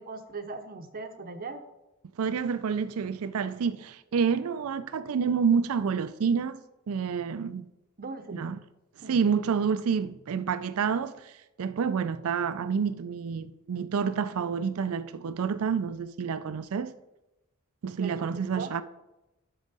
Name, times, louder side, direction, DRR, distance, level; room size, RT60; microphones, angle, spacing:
voice 1, 0.0-1.6 8.0-8.5 9.0-9.2 18.0-18.8, right 3 dB, 40° right, 0.7 m, -39 dB
voice 2, 2.2-6.6 6.9-7.7 8.3-8.6 9.1-16.9 17.8-18.8, right 6 dB, 70° right, 0.4 m, -28 dB
11.5 x 6.3 x 4.0 m
head